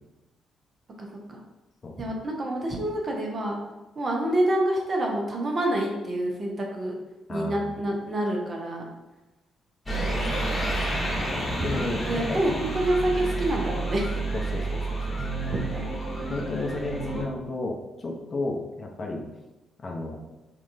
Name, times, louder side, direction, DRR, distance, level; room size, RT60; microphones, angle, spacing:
voice 1, 1.0-1.4 2.0-3.6 4.0-6.9 7.3-8.8 11.6-14.1 15.5-15.8, right 1 dB, 40° right, -1 dB, 0.7 m, -27 dB
voice 2, 7.3-7.8 10.0-10.4 11.3-12.4 14.3-15.2 16.3-19.3 19.8-20.2, left 2 dB, 40° left, 0 dB, 0.6 m, -33 dB
sound 1, 9.9-17.2, right 2 dB, 15° left, 1.0 m, -29 dB
3.8 x 2.4 x 2.6 m, 1.0 s
figure-of-eight pair, 40°, 0 cm